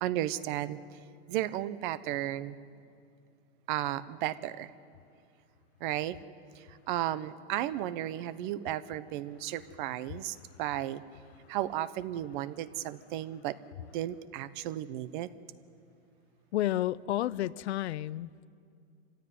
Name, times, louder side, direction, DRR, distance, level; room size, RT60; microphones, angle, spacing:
voice 1, 0.0-0.8 1.3-2.6 3.7-4.7 5.8-6.2 6.6-11.0 11.5-15.3, right 13 dB, 50° right, 1.0 m, -34 dB
voice 2, 16.5-18.5, left 13 dB, 85° left, 0.7 m, -31 dB
25.5 x 16.0 x 9.5 m
supercardioid pair, 150°, 32 cm